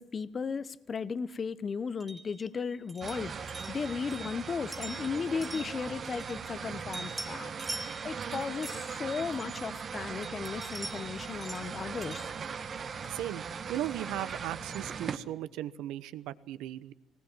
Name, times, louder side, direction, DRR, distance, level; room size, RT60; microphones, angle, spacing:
voice 1, 0.0-7.5 8.0-12.3, left 5 dB, 40° left, 0.9 m, -36 dB
sound 1, 2.0-6.6 6.9-9.8 10.2-13.3, right 2 dB, 15° right, 2.4 m, -45 dB
sound 2, 3.0-15.2, right 6 dB, 45° right, 1.4 m, -39 dB
voice 2, 13.1-16.9, right 13 dB, 85° right, 1.0 m, -37 dB
19.5 x 18.5 x 7.4 m
cardioid pair, 95°, 0 cm